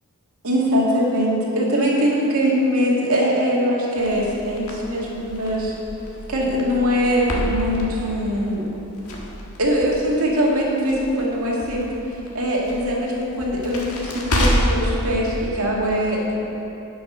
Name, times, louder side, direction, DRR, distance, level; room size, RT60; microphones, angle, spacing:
voice 1, 0.4-5.7 6.3-8.6 9.6-11.9 12.3-16.3, equal, 75° right, -4 dB, 2.0 m, -22 dB
Crackle, 4.0-14.9, equal, 75° left, 1.6 m, -29 dB
10.5 x 6.3 x 6.0 m, 3.0 s
head